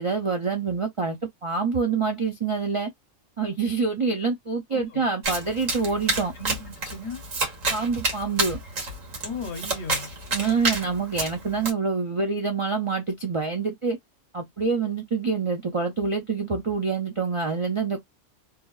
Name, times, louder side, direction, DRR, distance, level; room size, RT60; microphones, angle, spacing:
voice 1, 0.0-2.9 3.4-6.3 7.7-8.6 10.3-14.0 14.3-18.0, right 4 dB, 50° right, 0.3 m, -26 dB
voice 2, 4.7-5.1 6.3-7.2 9.2-10.1, left 4 dB, 65° left, 1.0 m, -36 dB
Domestic sounds home sounds, 5.2-11.7, right 2 dB, 85° right, 1.6 m, -29 dB
3.2 x 2.2 x 2.3 m
omnidirectional pair, 1.3 m